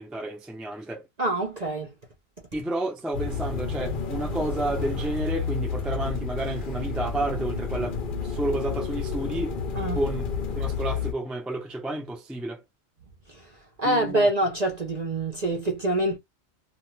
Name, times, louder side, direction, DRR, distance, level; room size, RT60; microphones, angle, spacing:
voice 1, 0.0-1.0 2.5-8.0 8.2-9.5 9.9-10.2 10.6-12.6 13.8-14.3, right 1 dB, ahead, 0.4 m, -31 dB
voice 2, 1.2-1.9 9.7-10.0 13.3-13.4 13.8-16.2, right 1 dB, 40° right, 0.6 m, -25 dB
sound 1, 3.1-11.1, left 5 dB, 50° left, 0.7 m, -30 dB
2.4 x 2.3 x 3.1 m
omnidirectional pair, 1.4 m